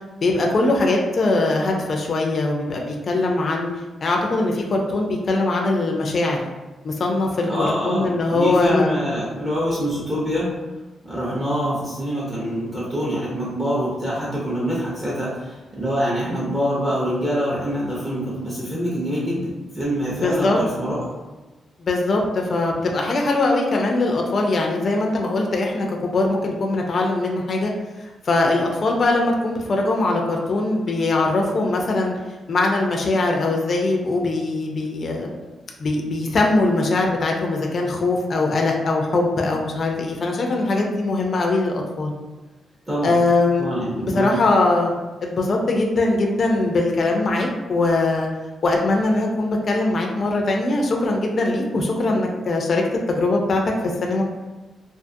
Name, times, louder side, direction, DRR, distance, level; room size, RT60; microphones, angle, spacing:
voice 1, 0.2-3.7 4.0-6.4 6.8-8.9 20.2-20.6 21.8-27.7 28.0-32.1 32.5-35.3 35.8-42.1 43.0-43.7 44.0-44.9 45.2-48.3 48.6-54.2, left 2 dB, 40° left, 0 dB, 0.3 m, -21 dB
voice 2, 7.5-10.5 11.0-21.1 42.9-43.2 43.6-44.4, equal, 15° right, -7 dB, 0.6 m, -25 dB
2.5 x 2.4 x 2.5 m, 1.2 s
wide cardioid pair, 160°, 0 cm